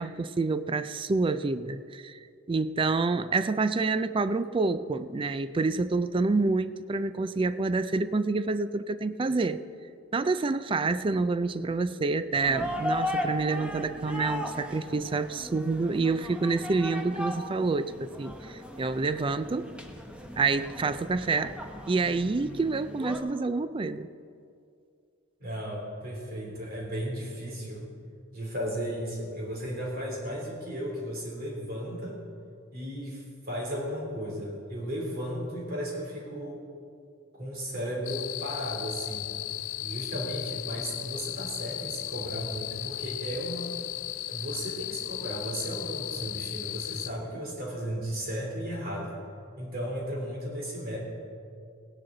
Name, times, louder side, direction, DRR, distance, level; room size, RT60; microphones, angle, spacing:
voice 1, 0.0-2.2 2.5-9.6 10.1-19.7 20.4-21.6 21.9-24.1, right 3 dB, 25° right, 13 dB, 0.4 m, -28 dB
sound 1, 12.3-23.2, left 1 dB, 5° right, 0.9 m, -37 dB
voice 2, 25.4-27.8 28.3-32.2 32.7-36.6 37.3-39.3 39.8-43.8 44.3-49.2 49.6-51.0, equal, 50° right, -2 dB, 3.2 m, -35 dB
sound 2, 38.0-47.1, left 15 dB, 75° left, 0.4 m, -36 dB
17.5 x 10.5 x 3.9 m, 2.4 s
head